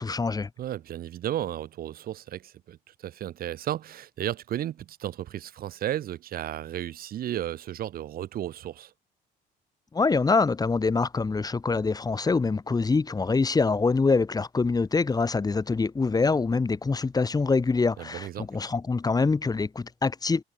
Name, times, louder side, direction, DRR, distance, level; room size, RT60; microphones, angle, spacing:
voice 1, 0.0-0.5 9.9-20.4, left 4 dB, 20° left, 3.8 m, -25 dB
voice 2, 0.6-8.9 18.0-18.5, right 12 dB, 60° right, 2.2 m, -34 dB
cardioid pair, 110°, 17 cm